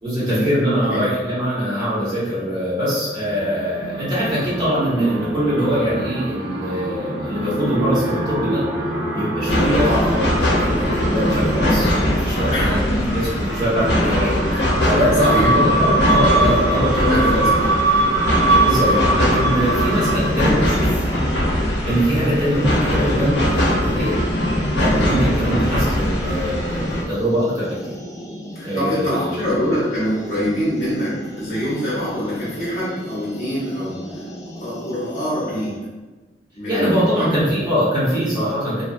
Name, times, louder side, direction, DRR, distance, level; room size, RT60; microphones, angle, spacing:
voice 1, 0.0-8.6 9.1-12.8 13.1-14.4 14.8-17.4 18.6-20.8 21.9-24.2 24.7-28.0 28.6-29.5 36.7-38.8, equal, 25° right, -10 dB, 1.0 m, -22 dB
sound 1, 3.2-12.4 13.1-20.2, right 2 dB, 70° right, 0.5 m, -23 dB
sound 2, 9.5-27.0, left 1 dB, 90° left, 0.5 m, -21 dB
voice 2, 12.5-13.2 14.5-14.8 15.2-16.0 16.9-17.7 18.7-19.0 25.4-25.6 28.5-34.3 34.6-35.7 36.6-37.5, equal, 45° left, -9 dB, 0.7 m, -25 dB
sound 3, 17.5-35.8, equal, 15° left, 0.3 m, -36 dB
2.6 x 2.2 x 2.4 m, 1.2 s
head